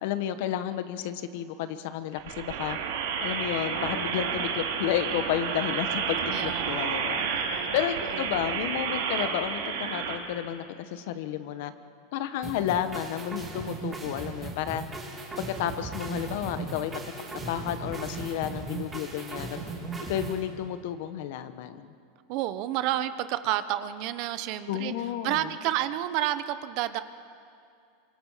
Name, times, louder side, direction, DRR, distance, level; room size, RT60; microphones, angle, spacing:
voice 1, 0.0-2.8 3.2-7.3 7.7-11.7 12.1-14.8 15.5-17.0 17.5-19.6 20.1-21.9 24.7-25.4, left 10 dB, 55° left, 11 dB, 1.2 m, -31 dB
sound 1, 2.2-10.1, right 6 dB, 85° right, 3.5 m, -30 dB
voice 2, 6.3-7.7 8.0-8.3 22.3-24.9 25.2-27.0, right 13 dB, 45° right, 12 dB, 0.9 m, -30 dB
sound 2, 12.4-20.4, right 3 dB, 10° right, 3.1 m, -37 dB
27.5 x 25.5 x 5.7 m, 2.4 s
supercardioid pair, 165°, 0 cm